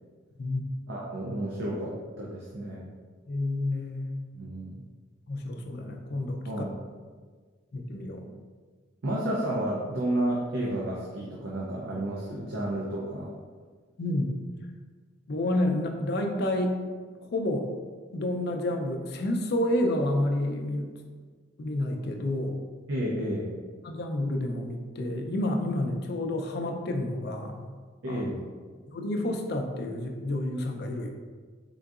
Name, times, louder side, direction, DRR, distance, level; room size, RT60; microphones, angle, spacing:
voice 1, 0.9-2.8 4.3-4.8 6.5-6.8 9.0-13.4 22.9-23.5 28.0-28.4, right 1 dB, 70° right, -4 dB, 0.6 m, -31 dB
voice 2, 3.3-4.1 5.3-6.4 7.7-8.3 14.0-14.3 15.3-16.8 17.3-17.7 18.1-20.9 21.6-22.6 23.8-27.7 28.1-28.2 28.9-31.1, left 1 dB, 55° left, 4 dB, 0.4 m, -29 dB
3.8 x 3.6 x 2.4 m, 1.5 s
head